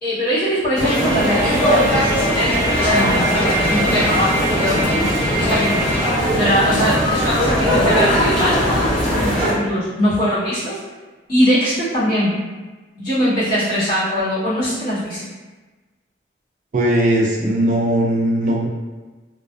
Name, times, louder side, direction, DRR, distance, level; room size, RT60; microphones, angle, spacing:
voice 1, 0.0-5.9 6.3-8.7 9.2-10.8 11.3-12.3 12.9-15.2, equal, 50° left, -13 dB, 1.4 m, -21 dB
sound 1, 0.7-9.5, equal, 5° left, 0.8 m, -19 dB
Trumpet, 0.8-6.2, right 1 dB, 30° left, 1.2 m, -25 dB
voice 2, 16.7-18.7, right 1 dB, 40° right, -3 dB, 0.3 m, -18 dB
2.4 x 2.3 x 2.3 m, 1.3 s
head